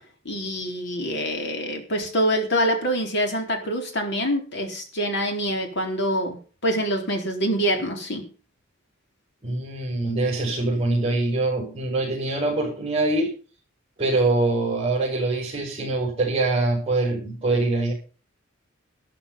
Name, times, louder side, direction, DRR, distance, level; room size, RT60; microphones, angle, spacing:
voice 1, 0.2-6.4 6.6-8.3, equal, 60° left, 3 dB, 4.1 m, -25 dB
voice 2, 9.4-13.3 14.0-17.9, right 2 dB, 30° right, -5 dB, 6.0 m, -24 dB
13.0 x 12.0 x 5.6 m, 0.38 s
head